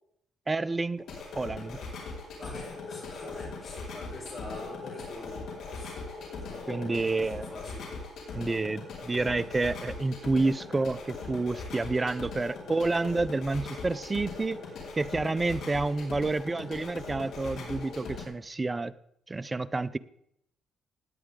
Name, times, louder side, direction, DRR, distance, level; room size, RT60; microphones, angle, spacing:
voice 1, 0.5-1.0 1.3-1.8 6.7-7.5 8.3-14.6 15.0-18.9 19.3-20.0, right 3 dB, 25° right, 16 dB, 0.5 m, -29 dB
sound 1, 1.0-18.2, left 3 dB, 70° left, 4.3 m, -40 dB
voice 2, 2.4-5.4 5.7-6.0 6.4-7.9, left 2 dB, 40° left, 0 dB, 4.9 m, -44 dB
17.0 x 10.0 x 3.7 m, 0.73 s
cardioid pair, 90°, 0 cm